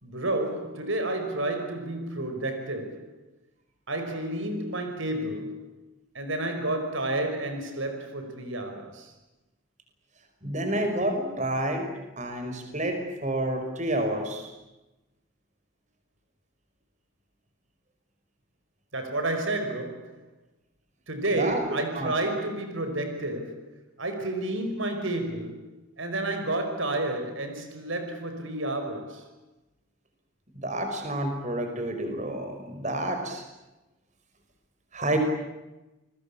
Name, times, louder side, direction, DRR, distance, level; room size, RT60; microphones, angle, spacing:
voice 1, 0.0-3.2 3.9-5.7 6.1-9.1 18.9-20.2 21.1-29.3, right 2 dB, 70° right, 5.1 m, -31 dB
voice 2, 10.4-11.9 12.2-14.5 21.4-21.6 22.0-22.1 30.6-33.4 34.9-35.2, right 1 dB, 35° right, 5.5 m, -29 dB
30.0 x 22.0 x 8.7 m
head